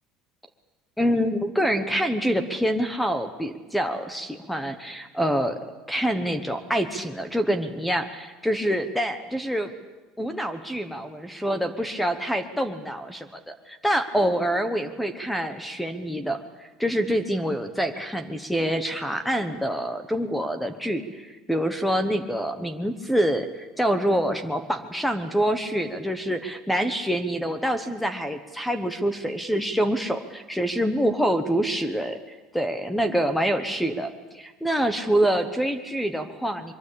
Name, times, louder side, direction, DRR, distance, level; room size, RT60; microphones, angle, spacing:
voice 1, 1.0-5.6 5.9-9.7 10.2-32.2 32.5-36.7, equal, ahead, 10 dB, 1.1 m, -26 dB
23.5 x 23.0 x 8.6 m, 1.2 s
cardioid pair, 170°, 0 cm